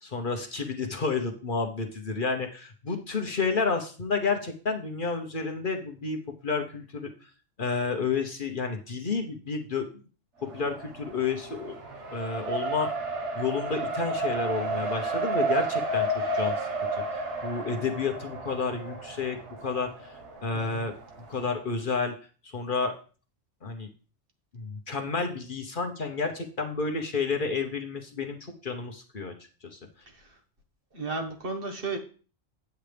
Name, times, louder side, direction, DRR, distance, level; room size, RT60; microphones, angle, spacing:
voice 1, 0.0-7.3 7.6-9.9 10.5-11.7 12.1-20.9 21.3-22.1 22.5-22.9 23.6-23.9 24.5-29.3 29.6-29.8, left 4 dB, 45° left, 4 dB, 1.1 m, -31 dB
Race car auto racing, 10.4-21.4, right 2 dB, 70° right, 1.6 m, -32 dB
voice 2, 20.5-20.9 30.1-30.4 30.9-32.0, right 3 dB, 50° right, 3 dB, 1.5 m, -34 dB
9.2 x 8.1 x 3.4 m, 0.39 s
omnidirectional pair, 1.2 m